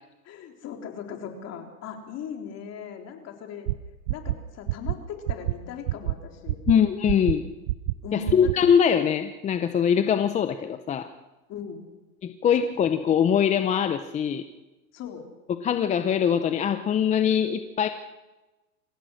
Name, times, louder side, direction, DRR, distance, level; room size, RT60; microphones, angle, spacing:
voice 1, 0.3-3.7 4.1-6.6 8.0-8.5 11.5-11.9 14.9-15.3, left 7 dB, 35° left, 3 dB, 3.7 m, -38 dB
sound 1, 3.7-3.8 4.1-4.3 4.7-4.9 5.3-5.5 5.9-6.1 6.5-6.7 7.1-7.3 7.7-7.9 8.3-8.5, right 18 dB, 55° right, 0.9 m, -25 dB
voice 2, 6.7-7.4 8.1-11.1 12.2-14.4 15.6-17.9, left 8 dB, 15° left, 9 dB, 0.6 m, -22 dB
26.5 x 16.0 x 6.4 m, 1.1 s
supercardioid pair, 140°, 46 cm